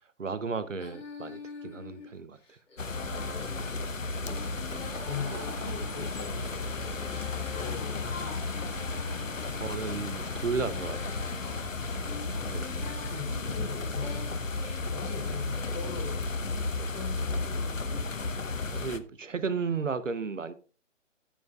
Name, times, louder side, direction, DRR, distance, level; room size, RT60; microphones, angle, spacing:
voice 1, 0.2-2.6 4.7-4.8 9.5-11.0 12.5-12.7 18.7-20.5, right 5 dB, 75° right, 0.9 m, -34 dB
Female singing, 0.7-9.6 10.2-13.2 13.7-16.0, left 3 dB, 70° left, 3.6 m, -46 dB
sound 1, 2.8-19.0, left 3 dB, 90° left, 0.9 m, -34 dB
voice 2, 2.9-8.1 11.4-12.1 12.7-14.3 14.5-18.2, left 5 dB, 25° left, 4.2 m, -43 dB
sound 2, 5.0-13.0, right 6 dB, 30° right, 0.7 m, -50 dB
13.5 x 7.3 x 2.4 m
figure-of-eight pair, 140°, 38 cm